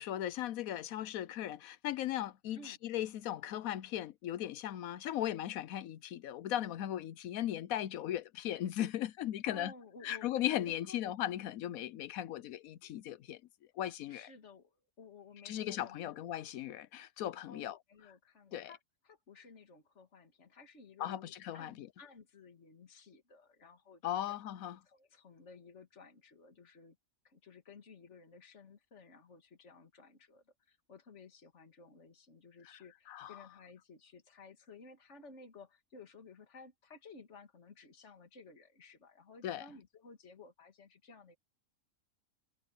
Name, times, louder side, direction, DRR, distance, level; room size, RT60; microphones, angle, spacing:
voice 1, 0.0-9.7 10.0-13.4 13.8-14.3 15.4-17.8 18.5-18.7 21.0-21.9 24.0-24.8 33.1-33.4 39.4-39.7, left 12 dB, 85° left, 1.1 m, -37 dB
voice 2, 9.5-10.3 10.6-11.0 14.1-16.2 17.5-24.4 24.8-27.0 27.2-41.4, left 4 dB, 55° left, 2.3 m, -56 dB
omnidirectional pair, 1.4 m